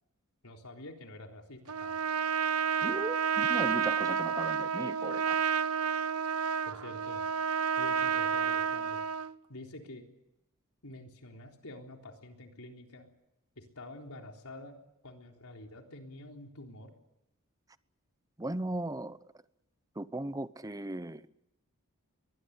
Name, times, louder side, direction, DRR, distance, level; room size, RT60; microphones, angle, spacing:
voice 1, 0.4-2.0 6.6-7.3 7.8-9.0 9.5-10.1 10.8-13.1 13.6-14.8 15.0-16.9, left 1 dB, 85° left, 3.8 m, -47 dB
Trumpet, 1.7-9.3, right 7 dB, 80° right, 0.8 m, -30 dB
voice 2, 2.8-5.4 18.4-19.2 20.0-21.2, right 1 dB, 15° right, 0.8 m, -37 dB
23.0 x 20.0 x 8.4 m
head